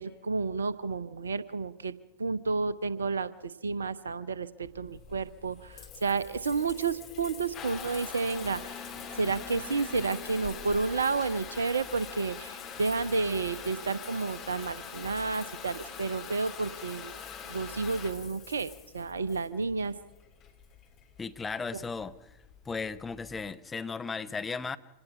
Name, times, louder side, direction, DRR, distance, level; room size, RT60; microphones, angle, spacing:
voice 1, 0.0-1.9 2.2-8.9 9.1-17.2 17.5-19.9 21.7-21.8, right 4 dB, 70° right, 18 dB, 0.8 m, -31 dB
Water tap faucet / Bathtub (filling or washing) / Trickle dribble, 4.6-23.5, left 7 dB, 35° left, 3.0 m, -44 dB
voice 2, 21.2-22.2 22.7-24.8, left 4 dB, 15° left, 10 dB, 0.8 m, -35 dB
25.5 x 18.5 x 5.6 m, 0.96 s
figure-of-eight pair, 90°, 0 cm